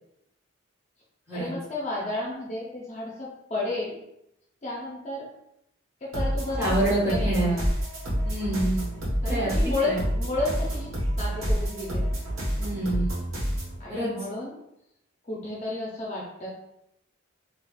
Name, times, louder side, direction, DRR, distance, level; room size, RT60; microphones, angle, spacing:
voice 1, 1.3-3.9 4.6-5.3 6.0-6.8 7.1-7.6 9.2-10.9 11.2-12.0 13.8-14.5 15.2-16.5, left 2 dB, 35° left, -4 dB, 0.6 m, -32 dB
sound 1, 6.1-13.8, equal, 90° right, 1.2 m, -28 dB
voice 2, 6.6-7.5 8.2-8.8 9.2-9.5 9.9-10.0 12.6-13.1 13.9-14.1, right 1 dB, 10° right, -8 dB, 1.1 m, -26 dB
4.1 x 2.4 x 2.3 m, 0.81 s
head